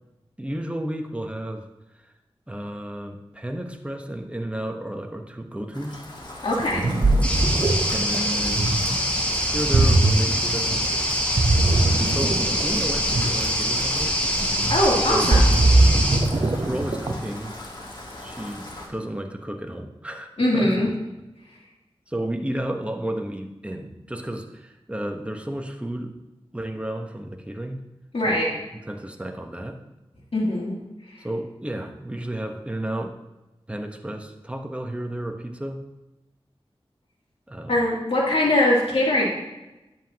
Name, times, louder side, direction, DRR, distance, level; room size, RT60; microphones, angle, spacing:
voice 1, 0.4-1.7 2.0-2.1 2.5-6.0 7.9-8.8 9.4-10.8 11.5-14.2 15.1-15.3 16.3-17.5 18.2-20.9 22.1-26.2 26.5-27.8 28.2-29.8 31.2-33.2 33.7-35.8 37.5-37.8, right 1 dB, 10° right, 4 dB, 1.0 m, -32 dB
Rain, 5.7-18.9, left 1 dB, 45° left, 1.6 m, -39 dB
voice 2, 6.4-6.9 14.7-15.5 20.4-20.9 28.1-28.5 30.3-30.8 31.1-31.2 37.7-39.3, left 1 dB, 75° left, -5 dB, 2.7 m, -21 dB
Ocean, 6.6-17.4, right 2 dB, 50° right, 0.7 m, -21 dB
sound 1, 7.2-16.2, equal, 15° left, 2.0 m, -24 dB
10.0 x 7.6 x 2.9 m, 1.0 s
cardioid pair, 45°, 10 cm